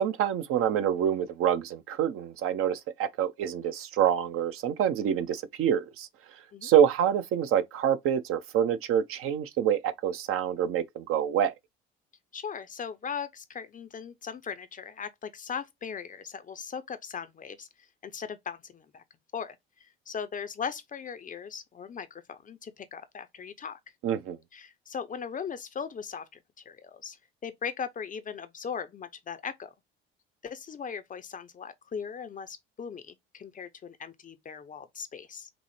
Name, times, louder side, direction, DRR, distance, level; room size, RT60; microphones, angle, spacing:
voice 1, 0.0-6.1 6.6-11.5 24.0-24.4, right 9 dB, 45° right, 0.6 m, -26 dB
voice 2, 12.3-17.7 18.0-19.0 19.3-23.8 24.5-26.4 26.7-27.2 27.4-29.7 30.4-35.5, left 6 dB, 30° left, 0.6 m, -39 dB
5.9 x 2.0 x 3.2 m
hypercardioid pair, 60°, 30 cm